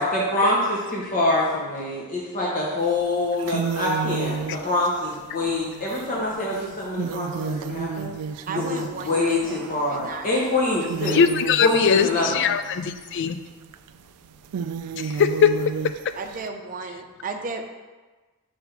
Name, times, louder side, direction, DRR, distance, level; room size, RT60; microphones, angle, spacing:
voice 1, 0.0-8.1 8.5-11.2 11.6-12.4, left 2 dB, 40° left, -4 dB, 0.9 m, -25 dB
sound 1, 2.9-3.0 3.3-10.3 10.6-16.5, right 6 dB, 85° right, 0.3 m, -32 dB
voice 2, 8.5-9.6 9.9-10.3 16.2-17.7, right 4 dB, 40° right, 4 dB, 0.6 m, -34 dB
voice 3, 11.1-13.4 14.9-15.5, left 7 dB, 55° left, 10 dB, 0.4 m, -21 dB
5.9 x 3.4 x 5.7 m, 1.3 s
head